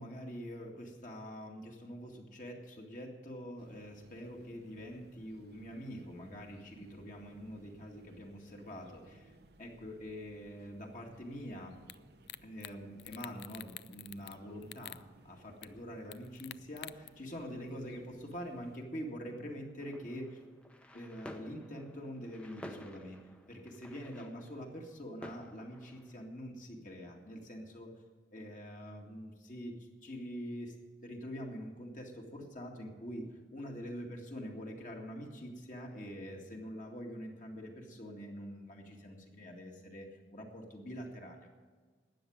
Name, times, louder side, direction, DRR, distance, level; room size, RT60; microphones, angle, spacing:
voice 1, 0.0-11.8 12.4-20.4 20.9-23.2 23.5-27.9 28.3-41.5, equal, 45° left, 0 dB, 2.1 m, -45 dB
sound 1, 3.6-18.8, right 2 dB, 60° right, 0.8 m, -62 dB
sound 2, 11.9-12.0 12.3-12.7 13.0-14.4 14.6-15.0 15.6-15.7 16.1-17.1, left 13 dB, 65° left, 0.4 m, -47 dB
sound 3, 19.8-26.3, equal, 5° left, 0.8 m, -52 dB
13.0 x 9.2 x 8.7 m, 1.4 s
head